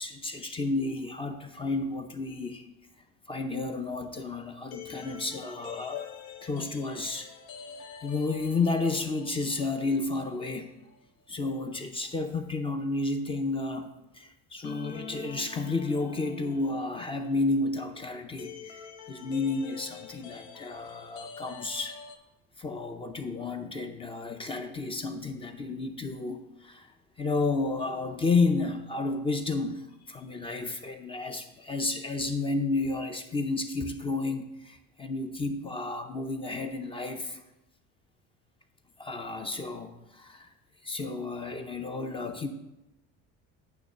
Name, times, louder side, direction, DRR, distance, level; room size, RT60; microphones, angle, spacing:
voice 1, 0.0-2.7 3.3-6.1 6.4-7.3 8.0-10.7 11.3-22.0 22.6-37.4 39.0-40.5 40.8-42.5, left 3 dB, 20° left, 6 dB, 0.6 m, -31 dB
sound 1, 3.9-10.6 10.9-11.0 14.6-22.2, left 7 dB, 75° left, 0.8 m, -47 dB
8.8 x 3.1 x 6.6 m, 0.90 s
cardioid pair, 135°, 29 cm